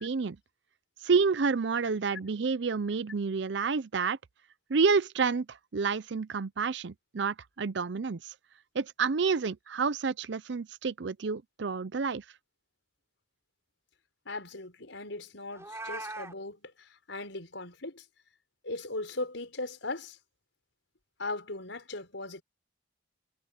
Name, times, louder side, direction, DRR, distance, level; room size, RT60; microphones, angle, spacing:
voice 1, 0.0-0.4 1.0-4.2 4.7-8.3 8.7-12.2, right 5 dB, 65° right, 0.6 m, -29 dB
voice 2, 14.3-18.0 18.6-20.2 21.2-22.4, left 2 dB, 80° left, 5.3 m, -38 dB
Meow, 15.5-16.3, right 2 dB, 15° right, 5.3 m, -39 dB
head